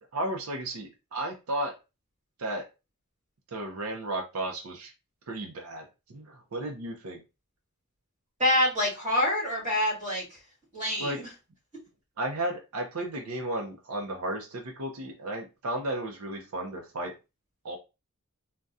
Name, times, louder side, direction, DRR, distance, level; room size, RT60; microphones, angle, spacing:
voice 1, 0.1-1.8 2.4-2.7 3.5-4.9 5.3-7.2 11.0-11.2 12.2-17.1 17.6-17.8, right 1 dB, 80° right, 2 dB, 0.6 m, -34 dB
voice 2, 8.4-10.2 10.7-11.1, left 1 dB, 35° right, -5 dB, 1.9 m, -26 dB
3.5 x 2.2 x 2.6 m, 0.27 s
head